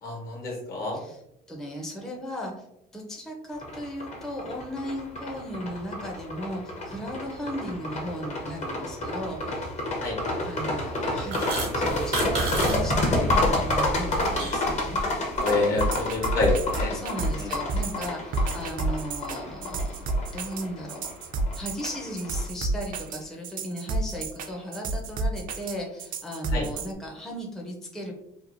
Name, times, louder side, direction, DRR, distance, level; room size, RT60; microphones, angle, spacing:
voice 1, 0.0-1.0 10.0-10.2 15.4-17.0 17.3-17.5 26.5-26.7, left 2 dB, 65° left, -1 dB, 1.2 m, -27 dB
voice 2, 1.5-2.7 2.9-9.7 10.4-15.0 16.9-19.9 20.3-21.0 21.6-28.1, equal, 5° left, -1 dB, 0.5 m, -36 dB
sound 1, 3.6-22.4, left 1 dB, 40° left, 0.8 m, -29 dB
sound 2, 11.0-12.8 13.0-13.4 13.8-14.7, right 3 dB, 90° right, 1.0 m, -32 dB
sound 3, 15.4-26.9, right 3 dB, 55° right, 0.4 m, -30 dB
2.9 x 2.3 x 2.5 m, 0.81 s
cardioid pair, 110°, 17 cm